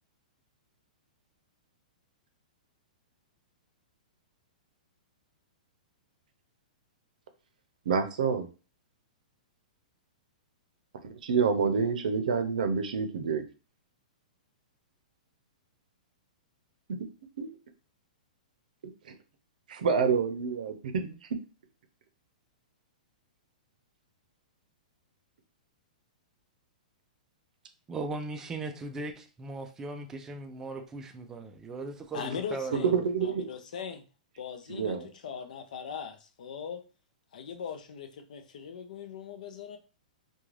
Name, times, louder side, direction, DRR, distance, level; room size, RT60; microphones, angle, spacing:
voice 1, 7.9-8.5 11.2-13.4 17.4-17.5 19.0-19.1 19.7-21.4 32.8-33.5 34.7-35.1, right 5 dB, 75° right, 0.6 m, -28 dB
voice 2, 27.9-33.0, right 3 dB, 10° right, 0.3 m, -38 dB
voice 3, 32.1-32.9 33.2-34.0 34.4-36.8 37.3-39.8, left 7 dB, 65° left, 0.5 m, -40 dB
2.4 x 2.3 x 3.1 m
hypercardioid pair, 160°, 5 cm